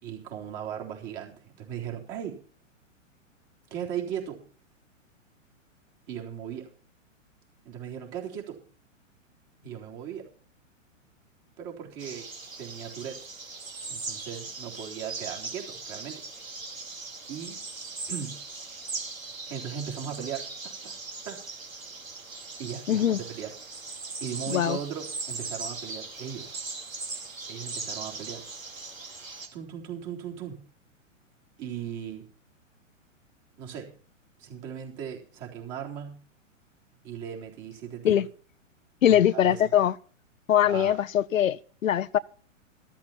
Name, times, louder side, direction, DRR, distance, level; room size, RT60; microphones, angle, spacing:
voice 1, 0.0-2.4 3.7-4.4 6.1-6.7 7.6-8.6 9.6-10.3 11.6-12.3 12.6-13.2 13.9-16.2 17.3-17.6 18.1-18.4 19.5-20.9 21.2-21.4 22.6-23.5 24.2-26.6 27.5-28.4 29.5-30.6 31.6-32.2 33.6-33.9 34.4-36.2 37.0-38.2 39.1-39.6 40.6-41.0, right 9 dB, 35° right, 3.8 m, -37 dB
sound 1, 12.0-29.5, right 4 dB, 90° right, 2.9 m, -39 dB
voice 2, 22.9-23.2 24.5-24.8 38.0-38.3 39.0-39.9 40.5-42.2, left 10 dB, 85° left, 0.6 m, -22 dB
13.5 x 13.0 x 4.3 m
hypercardioid pair, 120°, 39 cm